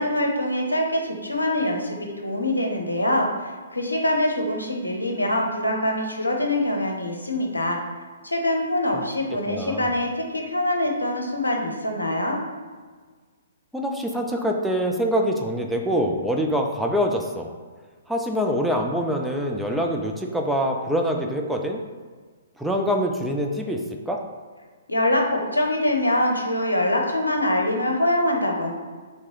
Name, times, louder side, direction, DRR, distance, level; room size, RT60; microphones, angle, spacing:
voice 1, 0.0-7.8 8.2-12.4 24.9-28.7, left 1 dB, 80° left, 1 dB, 0.7 m, -24 dB
voice 2, 9.5-9.9 13.7-17.5 18.1-21.8 22.6-24.2, equal, ahead, 0 dB, 0.3 m, -25 dB
3.4 x 2.9 x 4.5 m, 1.5 s
figure-of-eight pair, 125°, 0 cm